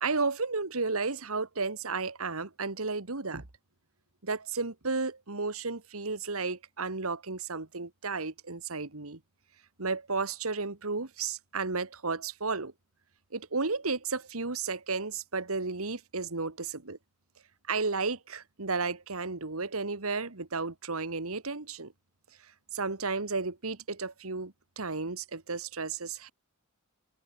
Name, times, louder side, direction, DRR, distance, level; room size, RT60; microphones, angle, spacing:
voice 1, 0.0-3.4 4.2-9.2 9.8-12.7 13.3-17.0 17.7-21.9 22.7-26.3, right 4 dB, 75° right, 1.9 m, -33 dB
head